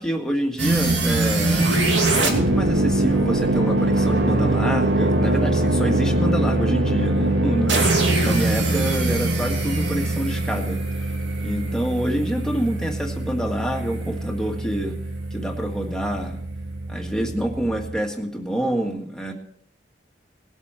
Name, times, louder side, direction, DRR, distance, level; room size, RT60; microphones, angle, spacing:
voice 1, 0.0-1.7 2.2-10.8 11.4-14.9 15.3-16.4 16.9-19.3, equal, 5° left, 1 dB, 1.7 m, -27 dB
sound 1, 0.6-11.5, right 2 dB, 85° right, 2.6 m, -23 dB
sound 2, 2.3-18.0, right 2 dB, 60° right, 0.8 m, -25 dB
19.5 x 8.3 x 4.4 m, 0.64 s
head